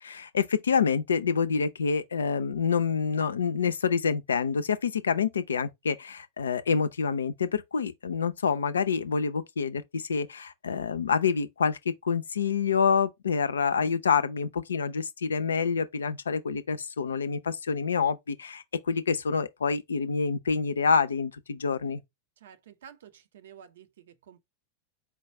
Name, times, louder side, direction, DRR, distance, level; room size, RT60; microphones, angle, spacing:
voice 1, 0.0-22.0, left 6 dB, 70° left, 0.5 m, -27 dB
voice 2, 22.4-24.4, right 8 dB, 60° right, 0.6 m, -51 dB
4.4 x 2.3 x 4.2 m
figure-of-eight pair, 90°, 0 cm